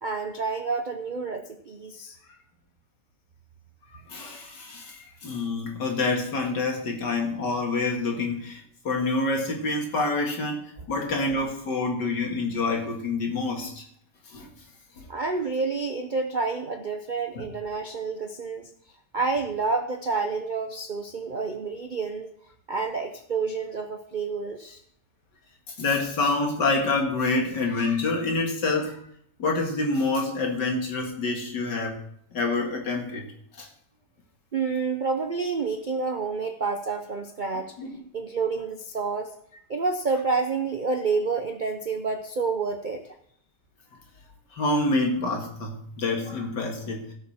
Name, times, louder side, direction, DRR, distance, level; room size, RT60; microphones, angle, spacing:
voice 1, 0.0-2.2 15.1-18.7 19.1-22.3 22.7-24.8 34.5-37.7 38.1-39.3 39.7-43.1, right 4 dB, 50° right, 5 dB, 0.6 m, -29 dB
voice 2, 3.9-10.6 10.9-13.8 14.3-14.5 15.0-15.1 25.8-29.0 29.4-32.0 32.3-33.2 33.6-33.7 37.8-38.0 44.5-47.1, left 3 dB, 80° left, 1 dB, 2.6 m, -27 dB
16.5 x 6.4 x 4.3 m, 0.69 s
omnidirectional pair, 1.8 m